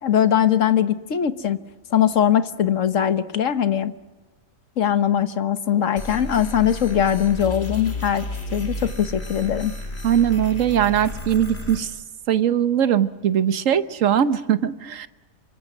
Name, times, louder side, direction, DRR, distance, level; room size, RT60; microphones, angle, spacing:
voice 1, 0.0-1.6 1.9-3.9 4.8-8.3 8.5-9.7, left 9 dB, 70° left, 11 dB, 1.5 m, -21 dB
sound 1, 6.0-11.8, left 2 dB, 50° left, 4.4 m, -32 dB
voice 2, 10.0-11.9 12.3-15.1, right 9 dB, 70° right, 12 dB, 1.4 m, -20 dB
27.5 x 25.5 x 6.1 m, 1.2 s
omnidirectional pair, 1.4 m